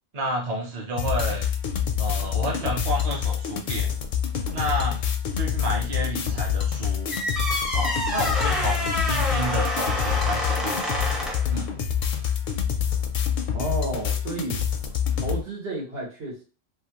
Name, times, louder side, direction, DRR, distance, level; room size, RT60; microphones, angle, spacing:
voice 1, 0.1-1.5 2.0-3.9 4.5-5.0 5.3-7.1 7.7-11.1 11.5-11.7, right 1 dB, 40° right, -1 dB, 0.8 m, -30 dB
sound 1, 1.0-15.4, left 8 dB, 60° left, 0.6 m, -26 dB
sound 2, 7.1-11.5, left 1 dB, ahead, 0.4 m, -28 dB
voice 2, 13.5-14.6 15.2-16.4, right 2 dB, 80° right, -5 dB, 1.6 m, -31 dB
3.0 x 2.4 x 2.9 m, 0.35 s
omnidirectional pair, 1.1 m